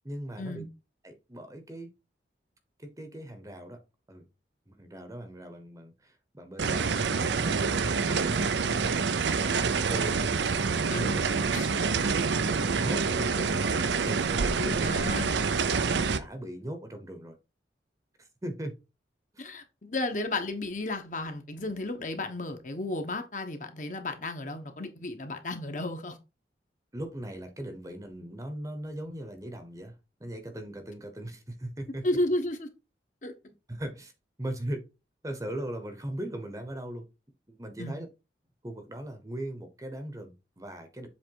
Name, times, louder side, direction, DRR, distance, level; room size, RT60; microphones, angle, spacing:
voice 1, 0.0-0.7 1.0-1.9 2.8-3.8 4.1-4.2 4.7-10.3 11.0-11.3 12.4-13.7 14.0-15.0 15.7-17.4 18.4-18.7 19.3-19.5 26.9-29.9 30.2-32.0 33.7-34.1 34.4-34.8 35.2-37.1 37.5-38.1 38.6-41.1, right 1 dB, 20° right, 0.9 m, -39 dB
sound 1, 6.6-16.2, right 5 dB, 80° right, 0.6 m, -27 dB
voice 2, 10.9-11.7 14.8-15.3 19.4-26.2 32.0-32.7 33.2-33.3 37.8-38.0, left 2 dB, 45° left, 1.0 m, -33 dB
7.5 x 3.3 x 4.6 m
head